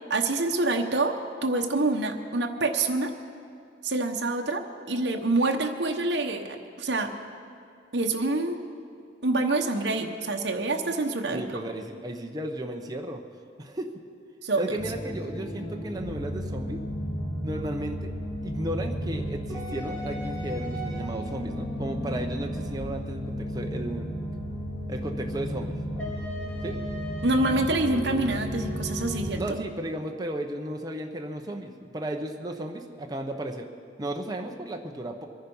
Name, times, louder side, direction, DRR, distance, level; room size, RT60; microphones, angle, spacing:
voice 1, 0.1-1.1 1.4-3.1 3.8-7.1 7.9-8.6 9.2-11.6 14.4-14.6 27.2-29.4, right 2 dB, 60° right, 3 dB, 1.0 m, -26 dB
voice 2, 11.3-13.2 13.6-13.9 14.5-16.8 17.4-18.1 18.4-24.1 24.9-25.7 26.6-26.8 29.3-33.7 34.0-35.3, right 1 dB, 20° right, 3 dB, 0.8 m, -34 dB
sound 1, 14.7-29.4, equal, 5° left, 3.5 m, -33 dB
23.0 x 10.0 x 5.5 m, 2.4 s
head